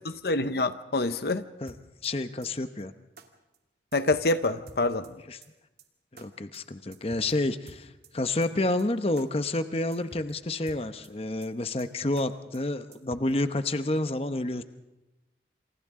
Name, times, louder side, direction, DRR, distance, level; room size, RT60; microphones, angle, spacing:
voice 1, 0.2-1.4 3.9-5.2, left 2 dB, 60° left, 11 dB, 0.8 m, -26 dB
sound 1, 1.7-2.1 2.4-2.5 2.8-2.9 3.2-3.3 3.5-3.6 3.9-4.3 4.7-5.1 5.4-5.5 5.8-5.9 6.2-6.3 6.5-6.6 6.9-7.3 7.7-8.1 8.4-8.5 8.8-8.9 9.2-9.3 9.5-9.6 9.9-10.3 10.7-11.1 11.4-11.5 11.8-11.9 12.2-12.3 12.5-12.6 12.9-13.3, right 2 dB, 60° right, 2.4 m, -49 dB
voice 2, 2.0-2.9 5.3-5.4 6.1-14.6, left 2 dB, 35° left, 9 dB, 0.9 m, -29 dB
28.0 x 28.0 x 3.7 m, 1.0 s
head